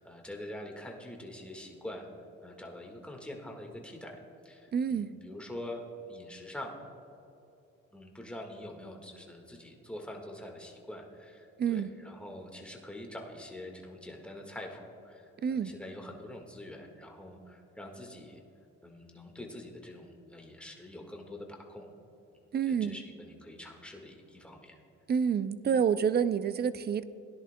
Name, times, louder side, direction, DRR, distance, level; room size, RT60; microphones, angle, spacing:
voice 1, 0.0-2.1 2.4-4.2 4.4-5.8 6.1-6.7 7.9-18.4 18.8-21.9 22.7-24.8, left 1 dB, 5° left, 1 dB, 1.6 m, -45 dB
voice 2, 4.7-5.1 11.6-11.9 15.4-15.7 22.5-23.0 25.1-27.0, right 7 dB, 35° right, 14 dB, 0.4 m, -28 dB
17.0 x 10.5 x 2.2 m, 2.8 s
cardioid pair, 90°, 30 cm